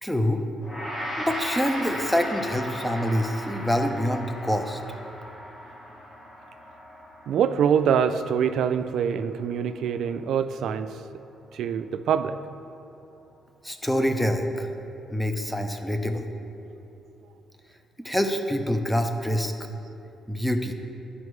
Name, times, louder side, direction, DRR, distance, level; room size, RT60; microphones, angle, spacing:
voice 1, 0.0-0.5 1.2-4.8 13.6-14.7 15.1-16.3 18.0-19.5 20.3-20.7, equal, 5° left, 6 dB, 0.6 m, -26 dB
Gong, 0.6-10.0, equal, 40° left, 1.8 m, -37 dB
voice 2, 7.3-11.0 11.5-12.4, right 8 dB, 75° right, 11 dB, 0.3 m, -24 dB
11.0 x 5.4 x 3.1 m, 2.8 s
cardioid pair, 90°, 0 cm